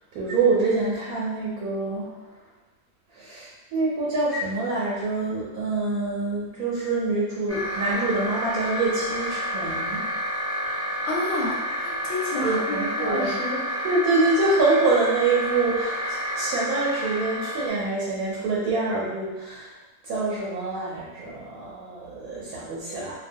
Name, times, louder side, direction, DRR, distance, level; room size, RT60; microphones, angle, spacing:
voice 1, 0.1-2.1 3.1-10.0 12.4-13.3 13.8-19.8 20.0-23.1, right 3 dB, 75° right, -6 dB, 1.0 m, -25 dB
sound 1, 7.5-17.7, equal, 20° right, 0.4 m, -30 dB
voice 2, 11.0-13.6, left 2 dB, 65° left, -3 dB, 0.8 m, -29 dB
2.5 x 2.1 x 2.5 m, 1.2 s
omnidirectional pair, 1.6 m